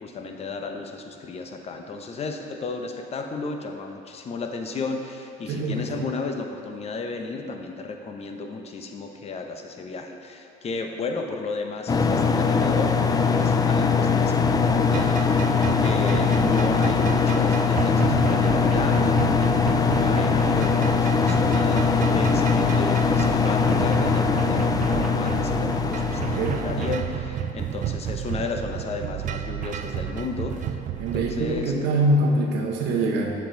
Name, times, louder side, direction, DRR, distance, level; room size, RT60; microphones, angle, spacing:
voice 1, 0.0-21.8 22.1-30.8 31.1-31.8, left 3 dB, 40° left, 4 dB, 0.7 m, -33 dB
voice 2, 5.5-6.1 26.2-26.6 31.0-33.3, right 1 dB, 85° right, 0 dB, 1.0 m, -24 dB
sound 1, 11.9-27.0, left 5 dB, 20° left, 0.4 m, -21 dB
sound 2, 14.4-31.6, right 9 dB, 50° right, 0.4 m, -32 dB
7.6 x 7.0 x 3.8 m, 2.7 s
cardioid pair, 110°, 17 cm